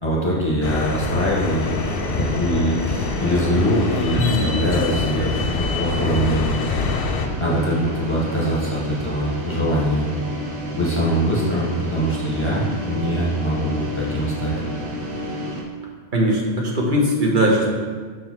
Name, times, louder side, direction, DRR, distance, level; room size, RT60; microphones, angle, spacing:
voice 1, 0.0-6.6 7.4-10.1 10.7-14.5, equal, 25° left, -6 dB, 1.5 m, -23 dB
sound 1, 0.6-7.3, left 4 dB, 65° left, 0.8 m, -25 dB
sound 2, 1.6-15.6, equal, 85° right, 1.3 m, -30 dB
voice 2, 4.1-4.4 12.6-12.7 16.1-17.7, equal, 50° right, -2 dB, 1.4 m, -20 dB
6.5 x 5.3 x 4.5 m, 1.5 s
omnidirectional pair, 1.1 m